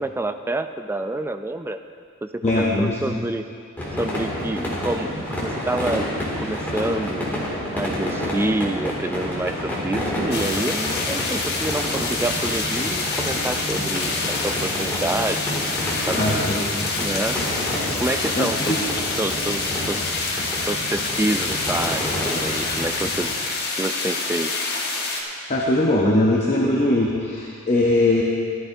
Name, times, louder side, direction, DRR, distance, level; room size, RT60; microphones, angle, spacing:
voice 1, 0.0-1.8 2.2-3.5 4.0-7.3 7.7-15.7 16.1-16.5 17.0-17.4 18.0-20.3 20.7-24.5, right 2 dB, 10° right, 7 dB, 0.3 m, -28 dB
voice 2, 2.4-3.2 16.2-16.9 18.4-18.8 25.5-28.2, left 1 dB, 30° left, -2 dB, 0.8 m, -21 dB
sound 1, 3.8-23.3, equal, 10° left, 2.4 m, -29 dB
sound 2, 10.3-25.2, left 3 dB, 50° left, 1.4 m, -27 dB
15.5 x 12.0 x 2.7 m, 2.4 s
head